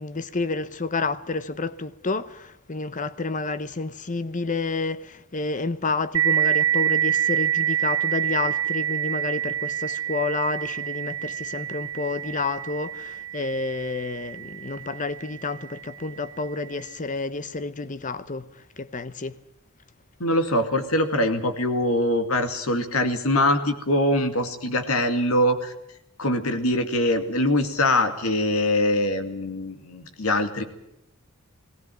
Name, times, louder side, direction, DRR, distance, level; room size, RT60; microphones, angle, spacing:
voice 1, 0.0-18.5 18.8-19.3, left 3 dB, 35° left, 0.9 m, -30 dB
sound 1, 6.1-15.4, right 10 dB, 85° right, 0.9 m, -27 dB
voice 2, 20.2-25.7 26.2-30.6, left 1 dB, 80° left, 2.4 m, -23 dB
18.5 x 18.0 x 9.2 m
head